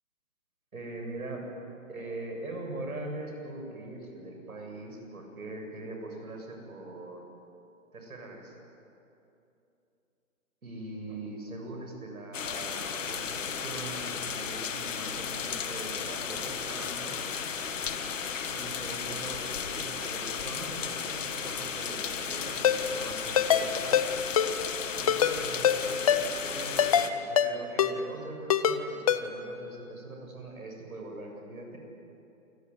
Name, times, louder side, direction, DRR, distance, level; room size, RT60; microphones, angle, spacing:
voice 1, 0.7-1.5 1.9-7.2 7.9-8.6 10.6-17.2 18.5-24.1 24.9-31.8, right 2 dB, 85° right, 2 dB, 7.5 m, -42 dB
sound 1, 12.3-27.1, left 6 dB, 60° left, 2.0 m, -34 dB
Ringtone, 22.6-22.8 23.4-23.6 23.9-24.1 24.4-24.5 25.1-25.3 25.6-25.8 26.1-26.2 26.8-27.1 27.4-27.5 27.8-27.9 28.5-28.8 29.1-29.2, left 9 dB, 25° left, 0.7 m, -22 dB
28.0 x 19.0 x 9.7 m, 2.8 s
hypercardioid pair, 150°, 42 cm